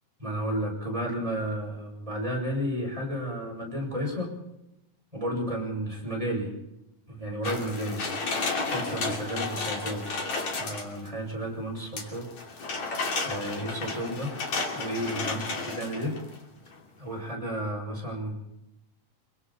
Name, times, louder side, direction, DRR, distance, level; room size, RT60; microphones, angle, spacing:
voice 1, 0.2-4.4 5.1-6.5 7.1-8.0 8.6-10.1 10.6-12.3 12.5-12.9 13.2-14.3 14.7-16.2 17.0-18.3, equal, 10° right, -2 dB, 7.0 m, -32 dB
sound 1, 7.4-11.1 12.0-16.4 16.7-16.8, left 3 dB, 50° left, 4.0 m, -32 dB
26.5 x 24.5 x 4.3 m, 0.92 s
omnidirectional pair, 4.3 m